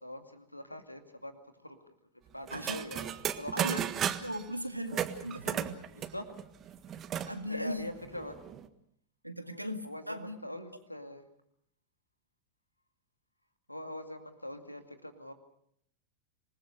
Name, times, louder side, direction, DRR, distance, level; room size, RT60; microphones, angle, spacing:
voice 1, 0.0-1.9 2.3-3.0 3.4-3.7 5.9-6.2 7.5-8.4 9.4-11.2 13.7-15.3, left 1 dB, 85° left, 7 dB, 2.4 m, -43 dB
sound 1, 2.5-4.4 4.9-7.3 7.7-7.8 8.0-8.7, right 9 dB, 30° right, 1.5 m, -35 dB
voice 2, 2.5-3.1 3.5-3.8 4.2-5.8 7.3-7.9 9.2-10.4, equal, 90° right, 7 dB, 2.0 m, -38 dB
27.0 x 20.0 x 6.6 m, 0.72 s
figure-of-eight pair, 90°, 0 cm